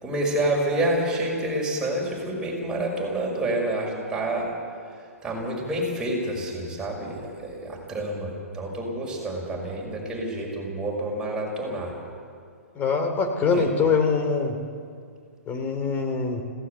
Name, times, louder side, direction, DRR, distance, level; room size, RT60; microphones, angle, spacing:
voice 1, 0.0-4.5 5.2-11.9 13.5-13.7, right 1 dB, 10° right, -3 dB, 5.8 m, -28 dB
voice 2, 12.7-14.6 15.5-16.4, left 5 dB, 20° left, 5 dB, 2.8 m, -23 dB
20.5 x 17.0 x 8.1 m, 2.2 s
figure-of-eight pair, 120°, 8 cm